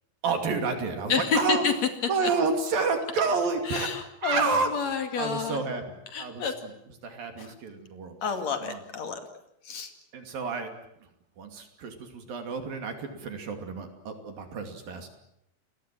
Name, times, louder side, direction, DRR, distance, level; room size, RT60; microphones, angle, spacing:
voice 1, 0.2-1.7 2.1-3.9 4.2-4.7 5.2-6.5 7.0-8.2 8.6-8.8 10.1-10.7 11.4-15.1, right 4 dB, 55° right, 6 dB, 4.1 m, -29 dB
voice 2, 1.1-1.7 2.2-2.3 3.6-5.6 6.1-6.5 7.4-7.5 8.2-9.2 9.6-9.9, left 6 dB, 45° left, 7 dB, 3.0 m, -29 dB
29.5 x 21.0 x 7.5 m, 0.80 s
omnidirectional pair, 5.2 m